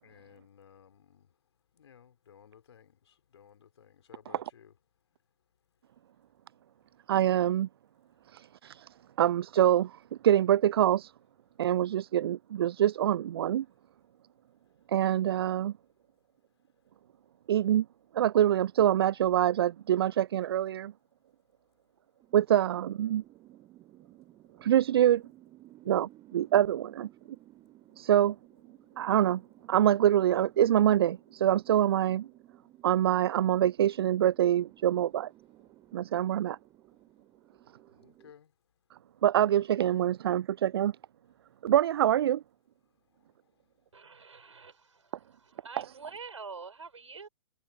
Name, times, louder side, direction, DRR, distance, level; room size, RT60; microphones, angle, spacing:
voice 1, 0.0-1.3 1.7-4.7 37.9-38.5 43.2-43.3, left 8 dB, 60° left, 4.0 m, -57 dB
voice 2, 7.1-7.7 8.3-8.9 9.2-11.1 11.6-13.7 14.9-15.7 17.5-17.9 18.1-20.9 22.3-23.2 24.6-25.2 25.9-27.1 28.0-28.4 29.0-29.4 29.7-32.3 32.8-35.3 35.9-36.6 39.2-40.9 41.6-42.4, right 11 dB, 50° right, 0.4 m, -25 dB
sound 1, 22.2-38.3, right 15 dB, 20° right, 3.1 m, -57 dB
voice 3, 43.9-47.3, right 5 dB, 70° right, 5.3 m, -46 dB
figure-of-eight pair, 115°, 16 cm